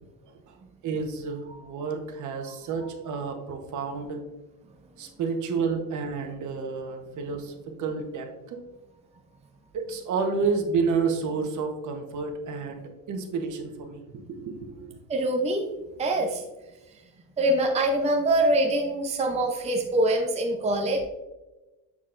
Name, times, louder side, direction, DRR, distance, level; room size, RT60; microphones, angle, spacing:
voice 1, 0.8-4.2 5.0-8.6 9.7-15.0, right 5 dB, 55° right, 5 dB, 1.1 m, -30 dB
voice 2, 15.1-15.7 16.0-16.4 16.9-17.0 17.4-21.0, right 1 dB, 20° right, 1 dB, 0.7 m, -24 dB
7.3 x 6.5 x 2.5 m, 1.1 s
cardioid pair, 155°, 35 cm